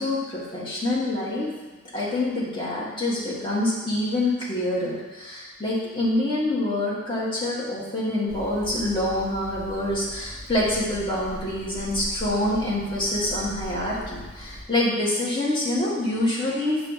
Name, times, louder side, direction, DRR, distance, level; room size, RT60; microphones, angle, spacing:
voice 1, 0.0-1.5 1.9-16.9, left 1 dB, 25° left, -6 dB, 1.6 m, -26 dB
Hammer, 8.3-14.6, equal, 45° left, 1.4 m, -40 dB
6.6 x 3.8 x 5.5 m, 1.2 s
head